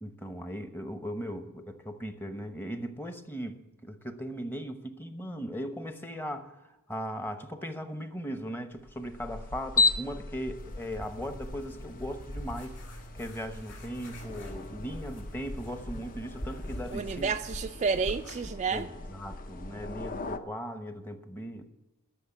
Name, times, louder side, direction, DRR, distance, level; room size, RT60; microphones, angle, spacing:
voice 1, 0.0-6.5 6.9-12.8 13.1-17.3 18.7-21.7, equal, 10° left, 0.9 m, -38 dB
sound 1, 8.8-20.4, left 3 dB, 40° left, 0.7 m, -36 dB
sound 2, 10.5-18.5, equal, 60° left, 4.3 m, -46 dB
voice 2, 16.9-18.9, right 5 dB, 30° right, 0.3 m, -30 dB
12.5 x 6.4 x 9.1 m
head